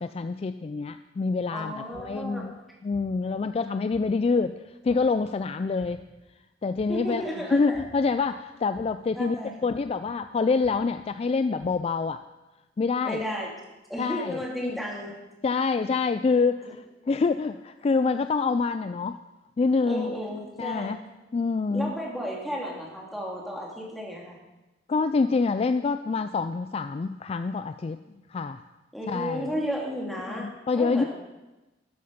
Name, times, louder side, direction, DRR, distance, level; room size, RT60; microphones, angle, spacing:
voice 1, 0.0-2.6 2.8-6.0 6.6-7.2 7.5-9.4 9.6-12.2 12.8-13.2 14.0-14.8 15.4-19.2 19.6-20.1 20.6-21.0 21.3-22.0 24.9-28.0 28.3-28.6 29.1-29.5 30.3-31.0, left 4 dB, 35° left, 10 dB, 0.3 m, -26 dB
voice 2, 1.5-2.5 6.9-7.8 9.1-9.5 13.1-13.5 13.9-15.2 19.8-21.0 21.7-24.4 28.9-31.1, equal, ahead, -3 dB, 2.3 m, -33 dB
sound 1, 1.9-2.3 2.9-3.3 3.9-4.3 4.8-5.3 5.8-6.2 6.7-7.2 7.7-8.1 8.7-9.2 9.7-10.1 10.6-11.0 11.6-11.7, equal, 35° right, 2.3 m, -51 dB
12.5 x 8.1 x 5.1 m, 1.1 s
head